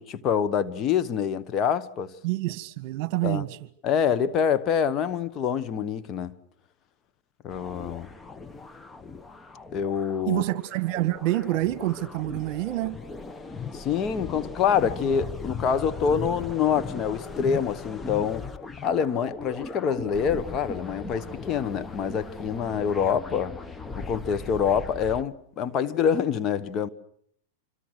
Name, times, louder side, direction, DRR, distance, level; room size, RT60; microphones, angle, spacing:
voice 1, 0.0-2.1 3.2-3.4 3.8-6.4 7.4-8.1 9.7-10.4 13.7-18.5 18.8-23.5 23.9-26.9, left 7 dB, 35° left, 1.2 m, -26 dB
voice 2, 2.2-3.6 10.2-13.0, right 17 dB, 50° right, 1.6 m, -27 dB
sound 1, 7.5-25.2, left 4 dB, 15° left, 1.0 m, -38 dB
26.5 x 25.5 x 6.4 m
hypercardioid pair, 120°, 0 cm